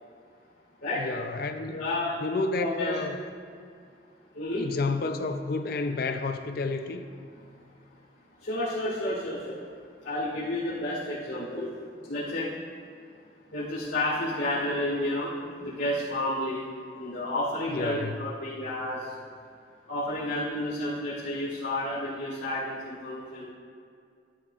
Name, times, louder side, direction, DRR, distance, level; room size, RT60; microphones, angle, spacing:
voice 1, 0.9-1.9 2.2-3.2 4.5-7.1 17.6-18.3, left 3 dB, 55° left, 7 dB, 0.5 m, -30 dB
voice 2, 1.7-2.2 2.5-3.0 4.3-4.6 8.4-9.6 10.0-11.7 12.1-12.5 13.5-15.3 15.6-16.6 17.0-19.1 19.9-23.4, left 1 dB, 85° left, -10 dB, 2.2 m, -31 dB
12.0 x 10.5 x 2.4 m, 2.3 s
head